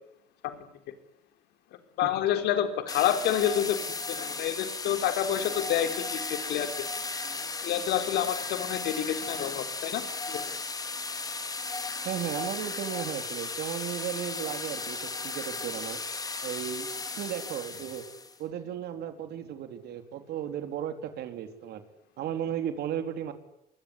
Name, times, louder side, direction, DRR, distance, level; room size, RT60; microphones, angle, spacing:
voice 1, 2.0-3.8 4.1-6.2 6.5-6.7 7.6-10.0 10.3-10.4, left 10 dB, 85° left, 8 dB, 4.3 m, -28 dB
sound 1, 2.9-18.4, left 3 dB, 20° left, 3.2 m, -35 dB
voice 2, 12.0-16.0 16.4-16.9 17.1-18.0 18.4-21.8 22.2-23.3, right 10 dB, 75° right, 8 dB, 3.9 m, -35 dB
26.0 x 21.5 x 9.9 m, 0.82 s
cardioid pair, 110°, 17 cm